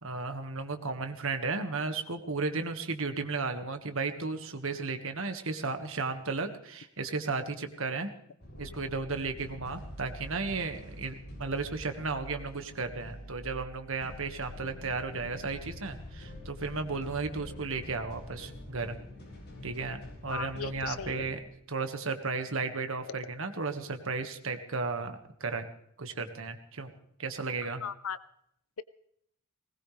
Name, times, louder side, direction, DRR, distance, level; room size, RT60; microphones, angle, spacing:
voice 1, 0.0-8.1 8.6-19.0 19.6-21.4 21.7-25.6 26.0-26.9 27.2-27.8, right 4 dB, 65° right, 7 dB, 1.7 m, -34 dB
sound 1, 8.4-21.4, left 1 dB, 55° left, 7.1 m, -46 dB
voice 2, 20.3-21.3 23.0-23.1 27.8-28.2, left 7 dB, 75° left, 15 dB, 0.6 m, -37 dB
20.5 x 19.0 x 3.4 m, 0.72 s
head